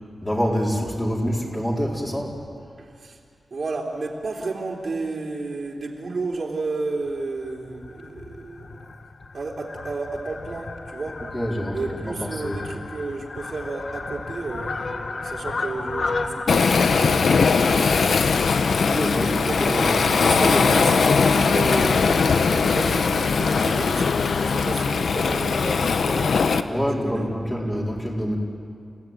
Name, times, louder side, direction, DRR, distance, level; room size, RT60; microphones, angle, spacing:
voice 1, 0.0-2.4 11.3-12.7 18.7-20.7 26.6-28.4, equal, 15° left, -3 dB, 4.4 m, -27 dB
voice 2, 2.8-3.2 3.5-8.8 9.3-11.3 11.7-17.6 19.5-24.1 24.4-27.2, right 3 dB, 60° right, -1 dB, 3.4 m, -32 dB
Fowl, 7.0-16.5, left 3 dB, 60° left, 1.5 m, -34 dB
Waves surf, 16.5-26.6, left 5 dB, 85° left, 0.9 m, -20 dB
30.0 x 17.0 x 9.1 m, 2.3 s
wide cardioid pair, 120°, 0 cm